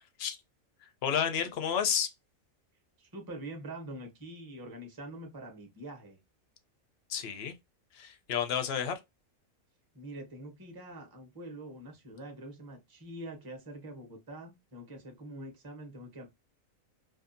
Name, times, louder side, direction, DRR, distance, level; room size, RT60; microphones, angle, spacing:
voice 1, 0.8-2.1 7.1-7.6 7.9-9.0, left 8 dB, 65° left, 0.7 m, -31 dB
voice 2, 3.0-6.2 9.9-16.3, right 1 dB, 20° right, 0.6 m, -45 dB
2.7 x 2.3 x 2.4 m
omnidirectional pair, 1.4 m